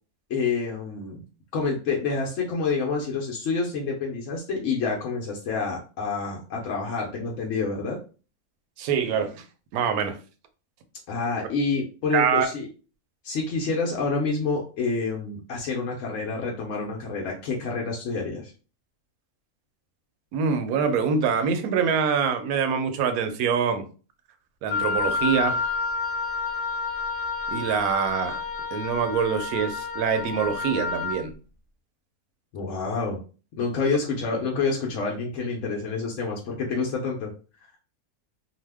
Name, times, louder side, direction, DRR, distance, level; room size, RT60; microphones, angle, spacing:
voice 1, 0.3-1.2 1.5-8.0 11.1-12.7 13.2-18.5 32.5-33.2 33.6-37.3, left 4 dB, 65° left, 0.9 m, -28 dB
voice 2, 8.8-9.4 9.7-10.2 12.1-12.5 20.3-23.8 24.6-25.7 27.5-28.4 28.7-31.3, right 6 dB, 80° right, 1.0 m, -25 dB
Wind instrument woodwind instrument, 24.7-31.2, left 4 dB, 50° left, 0.4 m, -29 dB
2.7 x 2.1 x 3.3 m
omnidirectional pair, 1.6 m